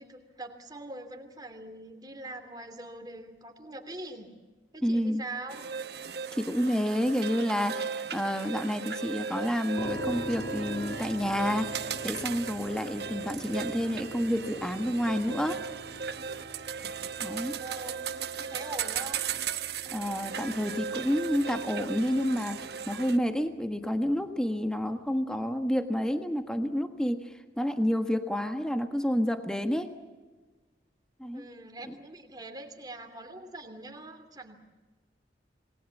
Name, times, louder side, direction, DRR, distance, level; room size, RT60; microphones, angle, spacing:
voice 1, 0.0-4.3 4.7-5.6 17.5-19.2 31.3-34.6, right 2 dB, 20° right, 6 dB, 2.8 m, -43 dB
voice 2, 4.8-5.2 6.3-15.6 17.2-17.6 19.9-22.6 22.9-29.9 31.2-31.4 31.9-32.0, equal, 5° left, 7 dB, 1.4 m, -29 dB
sound 1, 5.5-23.2, right 6 dB, 60° right, 1.1 m, -37 dB
sound 2, 9.8-24.6, equal, 35° left, 2.5 m, -45 dB
28.0 x 20.0 x 7.2 m, 1.3 s
head